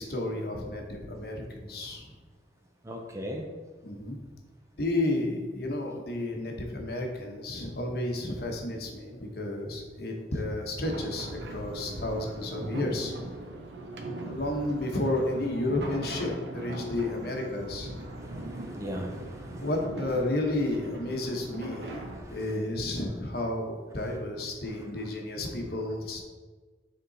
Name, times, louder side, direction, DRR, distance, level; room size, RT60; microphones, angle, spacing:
voice 1, 0.0-2.1 3.8-4.2 4.8-13.1 14.2-18.0 19.6-26.2, left 1 dB, 60° left, 2 dB, 1.0 m, -32 dB
voice 2, 2.8-3.5 18.0-19.7 21.7-21.8 22.1-22.6 24.1-24.2 24.7-24.9, equal, 15° right, 2 dB, 0.5 m, -40 dB
sound 1, 10.8-22.2, right 2 dB, 75° right, 0.7 m, -40 dB
6.7 x 3.7 x 3.9 m, 1.4 s
head